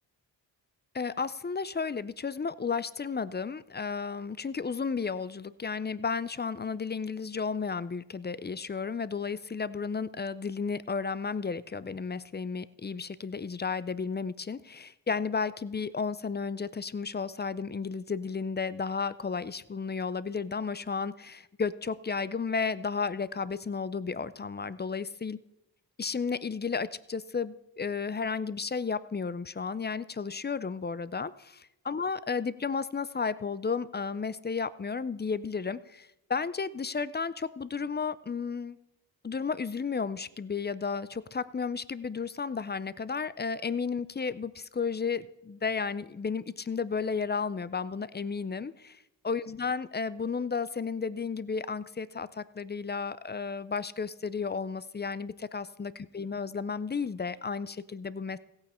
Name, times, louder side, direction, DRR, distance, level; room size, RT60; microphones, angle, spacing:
voice 1, 0.9-25.4 26.0-38.8 39.2-58.4, left 5 dB, 25° left, 17 dB, 0.4 m, -33 dB
16.0 x 8.8 x 4.3 m, 0.88 s
cardioid pair, 60°, 46 cm